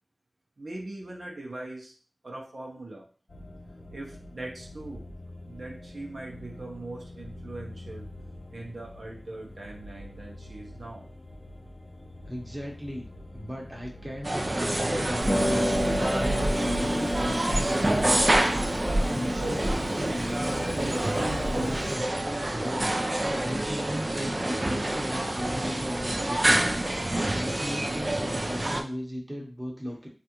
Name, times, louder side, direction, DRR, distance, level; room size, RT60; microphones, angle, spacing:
voice 1, 0.6-1.9 2.2-3.1 3.9-5.1 5.4-8.1 8.5-11.1, right 2 dB, 75° right, -2 dB, 0.7 m, -41 dB
sound 1, 3.3-15.8, left 1 dB, 50° left, 0.6 m, -45 dB
voice 2, 12.2-13.1 13.3-22.1 22.5-30.1, equal, 10° right, -1 dB, 0.9 m, -37 dB
sound 2, 14.2-28.8, right 1 dB, 40° right, 0.4 m, -27 dB
Harp, 15.2-21.9, equal, 10° left, 1.2 m, -30 dB
3.3 x 2.5 x 2.9 m, 0.39 s
wide cardioid pair, 55°, 0 cm